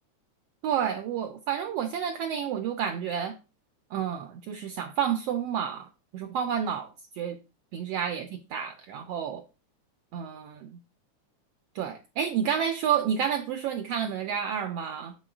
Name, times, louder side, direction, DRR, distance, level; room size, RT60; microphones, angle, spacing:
voice 1, 0.6-3.3 3.9-6.9 7.1-7.4 7.7-9.4 10.1-10.8 11.7-15.1, right 8 dB, 85° right, 7 dB, 1.4 m, -30 dB
8.5 x 6.9 x 2.4 m, 0.30 s
omnidirectional pair, 3.4 m